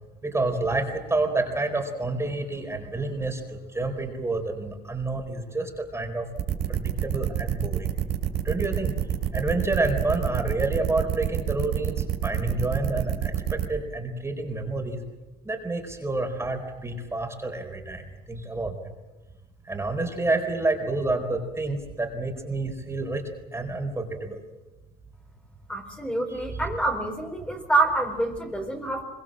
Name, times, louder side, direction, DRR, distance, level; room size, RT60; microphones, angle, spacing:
voice 1, 0.2-6.3 6.7-7.9 8.4-8.9 9.3-15.0 15.4-18.7 19.6-24.4 26.5-26.6, right 2 dB, 15° right, 4 dB, 4.4 m, -29 dB
sound 1, 6.4-13.7, right 10 dB, 80° right, 3.6 m, -27 dB
voice 2, 25.7-29.0, right 2 dB, 5° left, 3 dB, 4.6 m, -26 dB
25.0 x 23.5 x 7.7 m, 1.1 s
cardioid pair, 110°, 17 cm